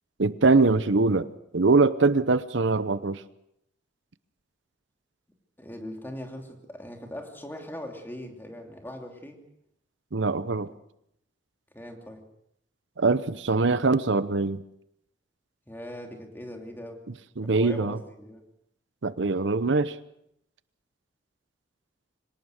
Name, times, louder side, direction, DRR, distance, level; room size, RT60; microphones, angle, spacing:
voice 1, 0.2-1.3 1.5-3.2 10.1-10.7 13.0-14.6 17.4-18.0 19.0-20.0, right 3 dB, 75° right, 15 dB, 0.8 m, -23 dB
voice 2, 5.6-9.4 11.7-12.2 15.7-17.0 17.4-18.4, left 1 dB, 10° left, 3 dB, 2.9 m, -40 dB
24.5 x 18.5 x 6.5 m, 0.75 s
head